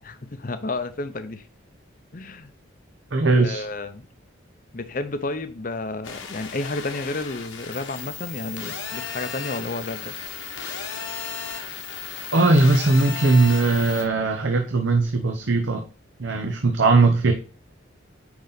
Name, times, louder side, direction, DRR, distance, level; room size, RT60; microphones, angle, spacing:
voice 1, 0.0-1.4 2.1-2.5 3.4-4.1 4.7-10.3, left 2 dB, 45° left, 0.7 m, -31 dB
voice 2, 3.1-3.6 12.3-15.8 16.2-17.3, right 3 dB, 70° right, 0.8 m, -19 dB
sound 1, 6.0-14.0, left 6 dB, 85° left, 1.5 m, -35 dB
9.6 x 3.9 x 4.0 m
head